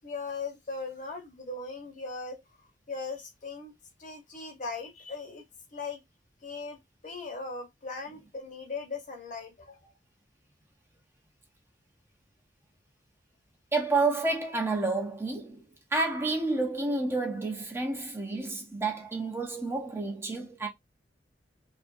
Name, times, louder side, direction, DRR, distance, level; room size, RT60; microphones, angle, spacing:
voice 1, 0.0-2.4 2.9-3.7 4.0-5.4 5.7-6.0 6.4-6.8 7.0-9.9, left 4 dB, 45° left, 0.9 m, -38 dB
voice 2, 13.7-15.6 15.9-20.7, right 3 dB, 15° right, 0.4 m, -30 dB
2.6 x 2.4 x 2.4 m
head